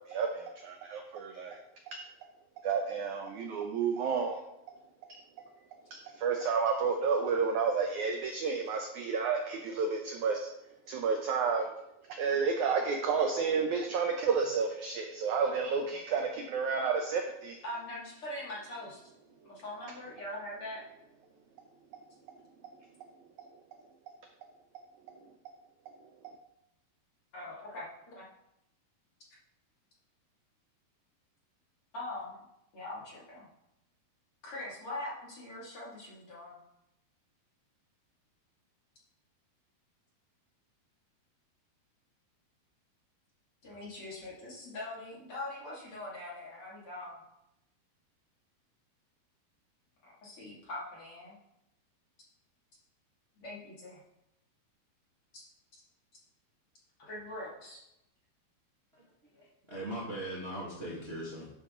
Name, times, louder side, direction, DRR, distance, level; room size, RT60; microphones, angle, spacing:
voice 1, 0.0-1.6 1.9-2.0 2.6-4.4 5.9-10.5 10.9-11.7 12.2-17.6, right 5 dB, 80° right, 3 dB, 1.7 m, -31 dB
voice 2, 17.6-19.0 19.4-20.8 27.3-28.3 31.9-32.5 32.7-33.5 34.4-36.6 43.6-47.2 50.0-51.4 53.4-54.0 55.3-55.4 57.0-57.8, left 1 dB, 40° left, -6 dB, 2.8 m, -42 dB
voice 3, 59.3-61.5, right 1 dB, 35° right, -6 dB, 0.9 m, -40 dB
11.5 x 6.5 x 3.8 m, 0.84 s
omnidirectional pair, 4.5 m